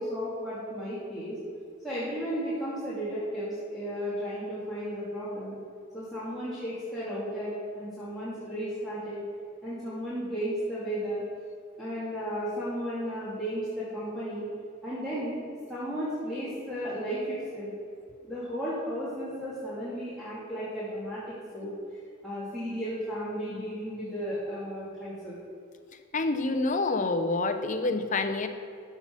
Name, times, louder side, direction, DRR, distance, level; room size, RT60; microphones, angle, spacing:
voice 1, 0.0-1.4 1.8-5.6 5.9-9.3 9.6-11.2 11.8-14.5 14.8-15.4 15.7-17.7 18.2-21.8 22.2-25.3, equal, ahead, -11 dB, 2.5 m, -34 dB
voice 2, 26.1-28.5, left 3 dB, 35° left, 7 dB, 0.7 m, -27 dB
14.0 x 5.8 x 6.1 m, 2.4 s
head